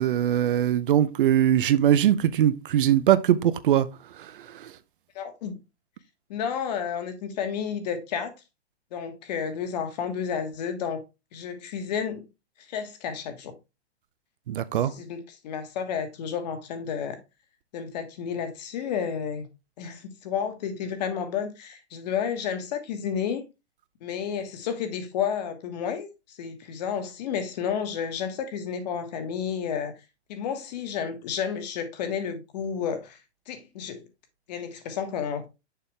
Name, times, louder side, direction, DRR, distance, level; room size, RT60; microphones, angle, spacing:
voice 1, 0.0-3.9 14.5-14.9, right 11 dB, 50° right, 0.7 m, -21 dB
voice 2, 5.1-5.6 6.3-8.3 8.9-11.0 11.3-12.3 12.7-13.5 14.8-17.2 17.7-19.5 19.8-23.4 24.0-29.9 30.3-33.2 33.5-34.0 34.5-35.5, left 7 dB, 40° left, 1.5 m, -31 dB
6.8 x 5.5 x 3.3 m
hypercardioid pair, 155°, 33 cm